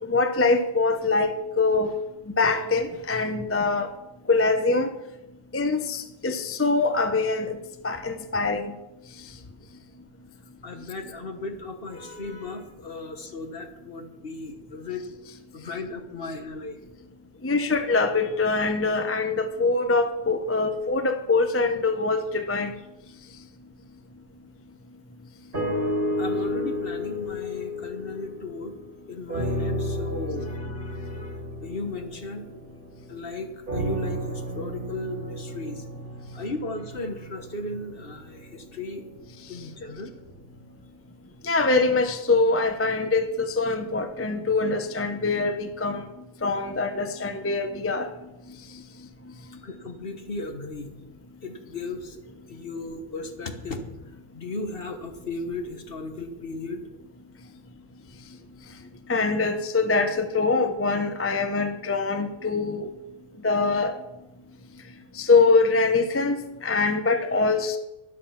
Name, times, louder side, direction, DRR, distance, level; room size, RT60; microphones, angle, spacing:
voice 1, 0.0-2.0 2.3-3.9 4.3-4.9 5.5-8.8 9.2-9.4 17.4-22.7 39.4-39.6 41.4-49.6 59.1-62.9 63.4-64.0 65.1-67.8, left 3 dB, 15° left, 8 dB, 0.6 m, -24 dB
voice 2, 10.6-15.0 15.5-16.8 26.2-28.8 29.1-32.5 33.1-35.9 36.3-39.1 39.5-40.1 49.6-50.9 51.4-52.2 52.5-56.8, left 3 dB, 50° left, 7 dB, 1.4 m, -36 dB
sound 1, 25.5-28.9 29.3-33.0 33.7-37.9 38.5-38.6, equal, 40° right, 1.9 m, -31 dB
12.5 x 11.0 x 5.8 m, 1.0 s
omnidirectional pair, 1.3 m